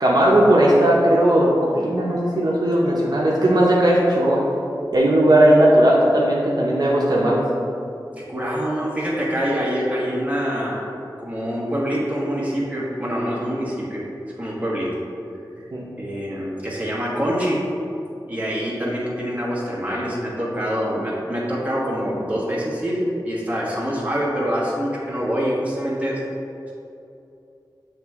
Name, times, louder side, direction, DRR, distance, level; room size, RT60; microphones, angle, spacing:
voice 1, 0.0-4.4 4.9-7.4 15.7-15.8, right 1 dB, 60° right, -5 dB, 0.8 m, -17 dB
voice 2, 8.3-10.8 11.2-14.0 14.4-14.9 16.0-17.6 18.3-26.2, equal, 20° right, -6 dB, 1.4 m, -25 dB
7.8 x 3.3 x 3.6 m, 2.7 s
wide cardioid pair, 80°, 8 cm